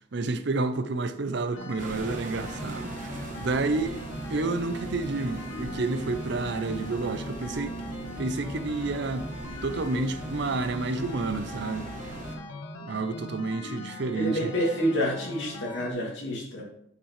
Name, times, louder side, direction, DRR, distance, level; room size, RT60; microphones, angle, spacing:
voice 1, 0.1-4.0 4.3-7.8 8.2-9.3 9.6-11.9 12.8-14.5, right 3 dB, 55° right, 0.6 m, -30 dB
sound 1, 1.5-15.9, left 2 dB, 90° left, 1.1 m, -41 dB
sound 2, 1.8-12.4, right 2 dB, 40° right, 1.0 m, -39 dB
voice 2, 14.2-16.6, equal, 60° left, 2.5 m, -28 dB
10.0 x 5.9 x 3.2 m
head